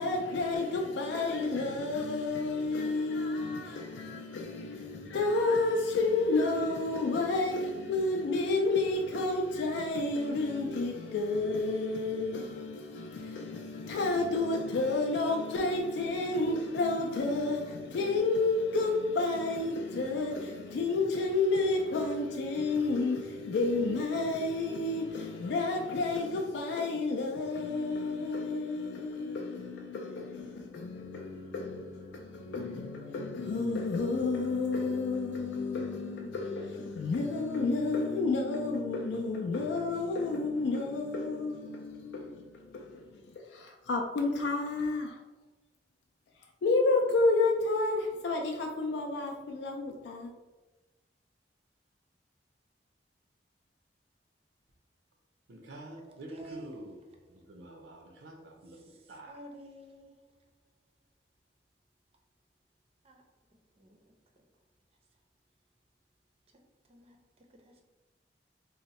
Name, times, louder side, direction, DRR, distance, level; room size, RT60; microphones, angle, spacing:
voice 1, 0.0-45.2 46.6-50.3, left 3 dB, 70° left, 0.3 m, -30 dB
voice 2, 55.5-56.9 57.5-58.3 58.6-58.8 59.1-59.3, right 1 dB, 85° right, 0.5 m, -46 dB
voice 3, 56.3-56.7 59.3-60.1 63.0-63.2 63.8-64.0 66.9-67.2 67.7-67.8, right 1 dB, 35° right, 0.5 m, -49 dB
2.7 x 2.1 x 4.0 m
head